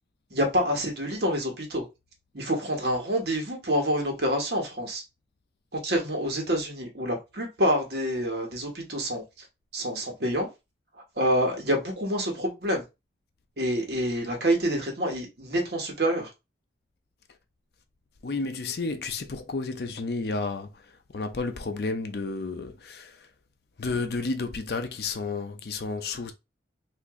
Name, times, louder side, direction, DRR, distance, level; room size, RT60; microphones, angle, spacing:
voice 1, 0.3-1.8 2.3-5.0 5.7-9.5 9.7-10.5 10.9-12.8 13.6-16.3, equal, 60° right, 1.1 m, -27 dB
voice 2, 18.2-23.3 23.8-26.3, left 3 dB, 55° left, 0.5 m, -32 dB
2.9 x 2.5 x 3.5 m
head